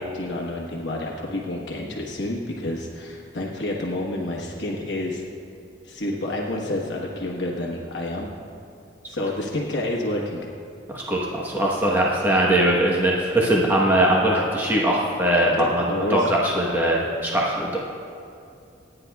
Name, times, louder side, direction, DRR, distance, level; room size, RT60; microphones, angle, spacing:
voice 1, 0.0-5.2 5.8-8.3 9.1-10.4 11.8-12.0 15.5-16.3, left 1 dB, 55° left, -3 dB, 1.2 m, -29 dB
voice 2, 10.9-17.8, right 1 dB, 10° right, -4 dB, 1.0 m, -21 dB
27.0 x 9.9 x 2.3 m, 2.6 s
head